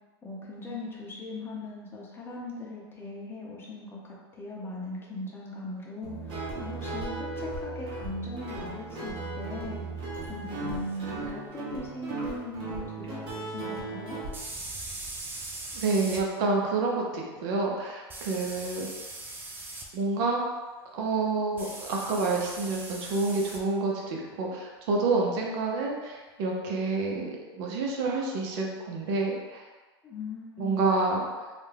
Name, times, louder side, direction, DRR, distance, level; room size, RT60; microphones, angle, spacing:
voice 1, 0.2-9.8 10.3-14.2 30.0-30.8, left 2 dB, 15° left, -4 dB, 0.7 m, -39 dB
Guitar, 6.0-14.3, right 2 dB, 40° right, 0.9 m, -36 dB
sound 1, 10.9-11.0 14.3-16.2 18.1-19.9 21.6-23.6, right 2 dB, 15° right, 0.4 m, -40 dB
voice 2, 15.7-18.9 19.9-20.4 20.9-27.3 27.6-29.6 30.6-31.2, right 3 dB, 55° right, -1 dB, 0.7 m, -28 dB
2.4 x 2.1 x 3.3 m, 1.3 s
hypercardioid pair, 110°, 14 cm